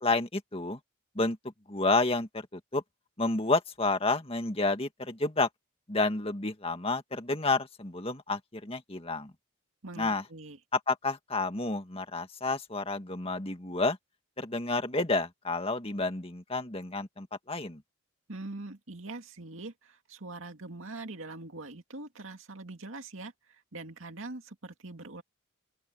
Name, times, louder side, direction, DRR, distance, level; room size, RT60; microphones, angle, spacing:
voice 1, 0.0-0.8 1.2-1.4 1.7-2.8 3.2-5.5 5.9-9.3 10.0-10.2 10.7-14.0 14.4-17.8, left 3 dB, 25° left, 2.0 m, -30 dB
voice 2, 9.8-10.6 18.3-23.3 23.7-25.2, right 2 dB, 70° right, 2.3 m, -43 dB
open air
head